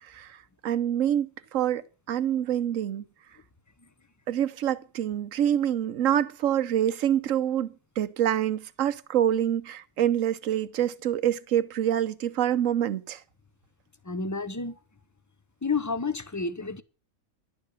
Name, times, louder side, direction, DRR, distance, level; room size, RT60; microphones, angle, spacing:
voice 1, 0.0-0.4 0.6-1.8 2.1-3.0 4.3-13.2, right 10 dB, 70° right, 1.2 m, -26 dB
voice 2, 14.0-14.8 15.6-16.8, left 4 dB, 20° left, 0.6 m, -30 dB
11.5 x 9.6 x 6.4 m
omnidirectional pair, 1.5 m